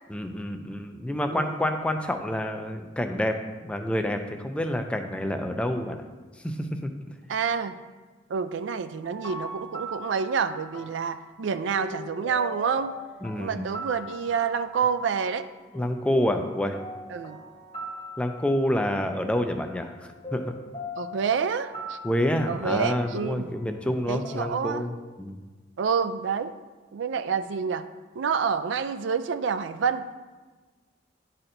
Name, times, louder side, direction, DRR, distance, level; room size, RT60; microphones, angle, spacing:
voice 1, 0.1-6.0 6.4-6.7 13.2-13.6 15.7-16.8 18.2-20.5 22.0-25.4, left 1 dB, 5° left, 5 dB, 0.4 m, -28 dB
voice 2, 7.3-7.8 8.3-12.9 13.4-15.5 17.1-17.4 21.0-22.0 22.5-23.5 24.1-24.9 25.8-26.5 26.9-27.8 28.2-30.1, right 6 dB, 80° right, 11 dB, 0.4 m, -28 dB
sound 1, 9.0-24.5, equal, 30° left, 1.1 m, -41 dB
11.0 x 4.2 x 2.6 m, 1.3 s
head